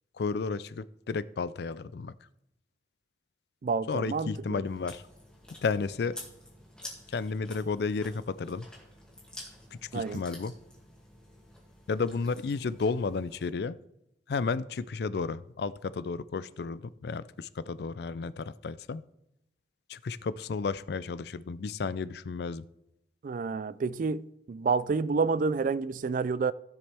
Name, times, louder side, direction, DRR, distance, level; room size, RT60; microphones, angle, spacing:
voice 1, 0.2-2.1 3.9-5.0 5.6-6.1 7.1-8.7 9.7-10.5 11.9-13.8 14.3-19.0 19.9-22.7, left 4 dB, 60° left, 0.4 m, -32 dB
voice 2, 3.6-4.6 9.9-10.2 23.2-26.5, right 4 dB, 50° right, 0.3 m, -29 dB
Chewing mastication, 4.6-13.5, left 1 dB, 5° left, 2.3 m, -50 dB
15.5 x 7.2 x 3.4 m
head